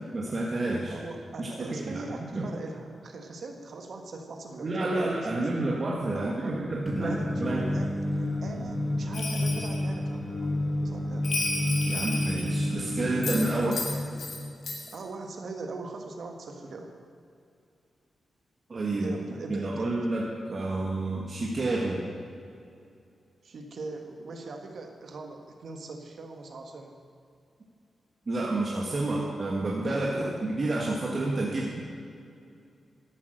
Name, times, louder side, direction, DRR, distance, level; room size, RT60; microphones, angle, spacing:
voice 1, 0.1-0.9 1.4-2.0 2.3-2.5 4.6-7.6 11.8-13.8 18.7-19.1 19.5-22.0 28.3-31.8, right 2 dB, 40° right, -3 dB, 1.5 m, -29 dB
voice 2, 0.9-5.5 6.1-6.6 7.0-10.5 10.8-11.3 11.8-12.1 13.6-13.9 14.9-16.9 19.0-20.1 23.4-27.0 28.9-29.3 30.1-30.3, right 3 dB, 60° right, 3 dB, 1.6 m, -41 dB
sound 1, 6.9-14.8, left 1 dB, 25° left, 0.7 m, -31 dB
Singing, 6.9-13.4, equal, ahead, 1.4 m, -36 dB
Bell, 9.1-9.8 11.2-12.7 13.2-14.4 14.6-15.0, left 3 dB, 65° left, 2.3 m, -33 dB
13.5 x 8.6 x 6.5 m, 2.5 s
wide cardioid pair, 115°, 0 cm